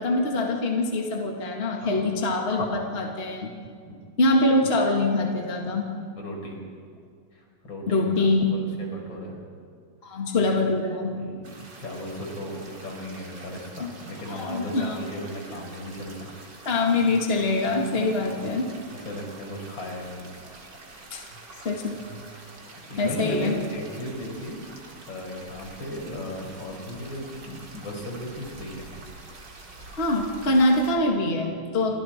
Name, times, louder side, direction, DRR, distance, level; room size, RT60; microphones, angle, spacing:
voice 1, 0.0-3.5 4.2-5.9 7.9-8.5 10.0-11.2 13.8-13.9 14.3-15.0 16.7-18.7 21.1-21.2 21.6-22.0 23.0-23.6 29.9-31.9, left 2 dB, 30° left, 1 dB, 2.0 m, -24 dB
voice 2, 1.7-2.1 2.8-3.0 3.9-4.1 6.1-6.6 7.3-9.4 10.1-10.2 11.1-16.3 18.1-18.4 18.9-20.3 22.9-24.6 25.1-28.9 31.9-32.0, equal, 70° left, 0 dB, 5.3 m, -36 dB
sound 1, 11.4-30.9, right 2 dB, 60° right, 3.5 m, -46 dB
29.0 x 24.5 x 4.4 m, 2.1 s
omnidirectional pair, 2.2 m